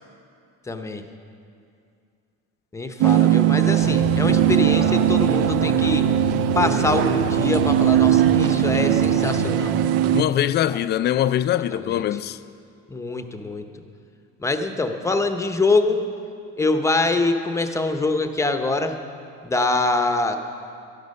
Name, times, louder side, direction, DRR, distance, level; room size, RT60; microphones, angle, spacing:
voice 1, 0.7-1.0 2.7-6.1 6.5-9.8 10.7-10.8 11.7-12.0 12.9-13.7 14.4-16.0 16.6-19.0 19.4-20.4, left 2 dB, 10° left, 0.7 m, -24 dB
sound 1, 3.0-10.2, right 14 dB, 55° right, 0.4 m, -19 dB
sound 2, 3.8-10.4, left 9 dB, 85° left, 0.6 m, -30 dB
voice 2, 10.1-12.4, left 11 dB, 35° left, 0.4 m, -22 dB
12.5 x 11.5 x 5.4 m
cardioid pair, 120°, 29 cm